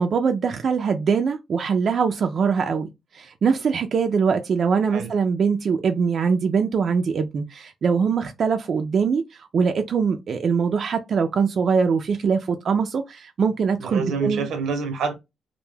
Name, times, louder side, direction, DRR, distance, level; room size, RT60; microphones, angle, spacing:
voice 1, 0.0-14.5, right 5 dB, 55° right, 0.3 m, -22 dB
voice 2, 13.8-15.1, right 5 dB, 90° right, 0.7 m, -27 dB
2.2 x 2.1 x 3.1 m
cardioid pair, 115°, 0 cm